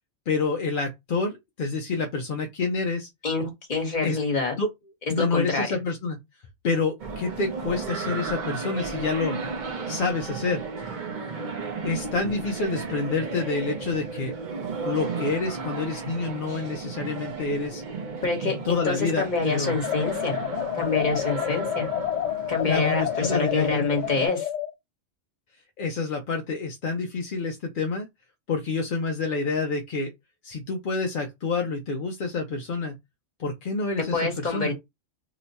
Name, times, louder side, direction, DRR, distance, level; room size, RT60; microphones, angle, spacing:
voice 1, 0.3-3.1 4.0-4.2 4.6-4.7 5.1-6.2 6.6-9.4 9.9-10.6 11.8-14.3 14.8-17.8 18.6-19.8 22.6-23.9 25.8-28.1 28.5-30.1 30.4-32.9 33.4-34.7, left 4 dB, 55° left, 0.6 m, -28 dB
voice 2, 3.2-4.5 5.2-5.7 16.5-16.6 18.2-20.4 20.8-21.9 22.5-24.5 34.1-34.8, left 4 dB, 40° left, 1.2 m, -26 dB
sound 1, 7.0-24.3, right 4 dB, 45° right, 0.7 m, -34 dB
sound 2, 19.8-24.7, left 12 dB, 80° left, 0.9 m, -29 dB
2.9 x 2.2 x 3.9 m
omnidirectional pair, 1.3 m